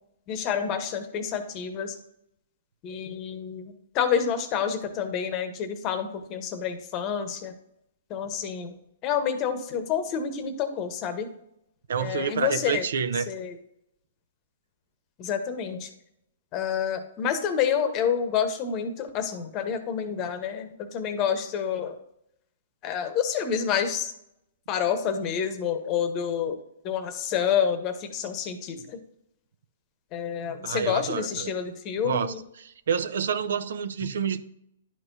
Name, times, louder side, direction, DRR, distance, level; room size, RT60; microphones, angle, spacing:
voice 1, 0.3-2.0 2.8-7.5 8.1-8.7 9.0-11.3 12.0-12.8 13.3-13.5 15.2-15.9 16.5-21.9 22.8-24.1 24.7-26.6 26.8-29.0 30.1-32.4 34.0-34.1, left 7 dB, 30° left, 0.9 m, -28 dB
voice 2, 11.9-13.3 30.6-31.6 32.0-34.4, right 7 dB, 75° right, 0.5 m, -28 dB
11.0 x 4.4 x 2.6 m
hypercardioid pair, 140°, 0 cm